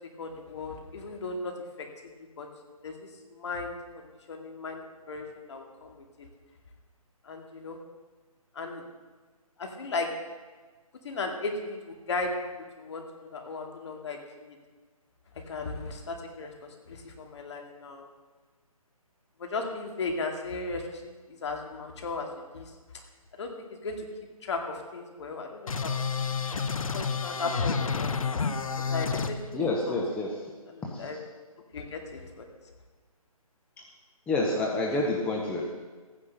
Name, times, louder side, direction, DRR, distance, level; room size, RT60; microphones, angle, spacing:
voice 1, 0.2-1.5 1.8-1.9 2.4-2.5 2.8-2.9 3.3-3.8 4.3-4.8 5.1-6.0 7.2-7.8 8.5-8.8 9.6-10.1 11.0-12.3 12.8-13.0 13.3-14.6 15.5-18.1 19.4-21.1 21.4-22.3 22.5-22.6 23.4-23.5 23.8-24.0 24.4-25.9 26.9-28.1 28.9-30.0 30.7-31.2 31.7-32.5 34.9-35.0, left 3 dB, 50° left, 3 dB, 2.3 m, -36 dB
sound 1, 25.7-29.3, left 5 dB, 65° left, 1.0 m, -29 dB
voice 2, 29.5-30.3 34.3-35.7, left 2 dB, 5° left, -2 dB, 0.9 m, -28 dB
14.5 x 9.9 x 6.6 m, 1.4 s
figure-of-eight pair, 155°, 19 cm